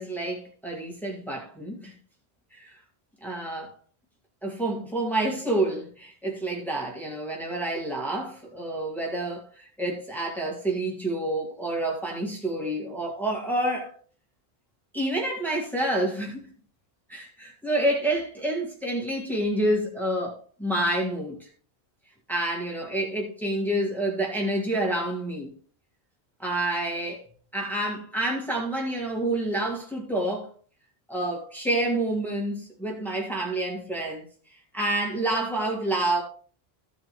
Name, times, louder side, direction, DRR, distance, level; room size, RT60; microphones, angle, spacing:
voice 1, 0.0-1.9 2.5-2.8 3.2-3.7 4.4-13.9 14.9-16.4 17.1-21.5 22.3-25.5 26.4-27.2 27.5-30.5 31.1-34.2 34.7-36.2, right 1 dB, ahead, 2.2 m, -28 dB
15.0 x 5.2 x 3.2 m
omnidirectional pair, 1.0 m